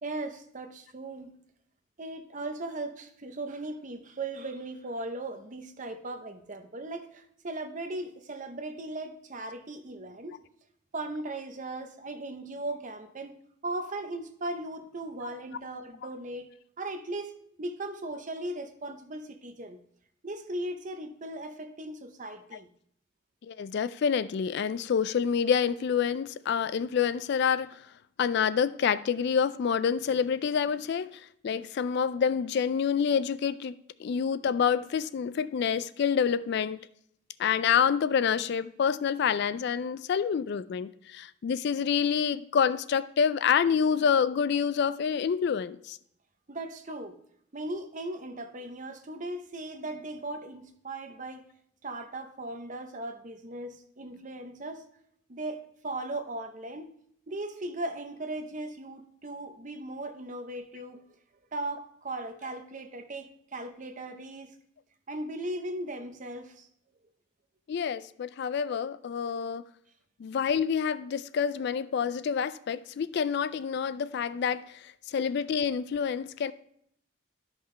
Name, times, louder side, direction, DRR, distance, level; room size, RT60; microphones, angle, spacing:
voice 1, 0.0-1.3 2.0-10.4 10.9-13.4 13.6-16.5 16.8-19.8 20.2-22.7 45.2-45.3 46.5-47.2 47.5-51.4 51.8-54.9 55.3-56.9 57.3-61.0 61.5-64.5 65.1-66.7, right 2 dB, 40° right, 0.8 m, -38 dB
voice 2, 23.5-27.8 28.2-36.9 37.4-46.0 67.7-69.6 70.2-76.5, left 7 dB, 55° left, 0.3 m, -27 dB
12.5 x 5.7 x 3.2 m
head